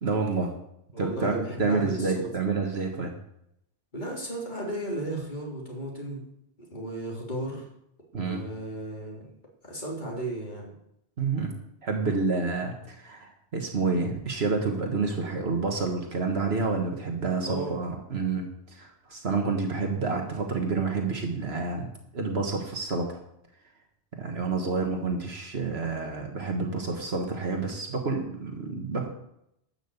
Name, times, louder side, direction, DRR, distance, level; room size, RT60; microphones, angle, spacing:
voice 1, 0.0-0.6 1.0-3.1 8.1-8.4 11.2-11.5 11.8-21.9 22.1-23.2 24.2-29.1, right 4 dB, 65° right, 2 dB, 1.7 m, -29 dB
voice 2, 0.9-2.3 3.9-6.3 6.6-7.7 8.2-9.3 9.6-10.7 17.5-17.8, right 1 dB, 45° left, -2 dB, 3.5 m, -35 dB
12.5 x 6.1 x 8.1 m, 0.77 s
omnidirectional pair, 1.1 m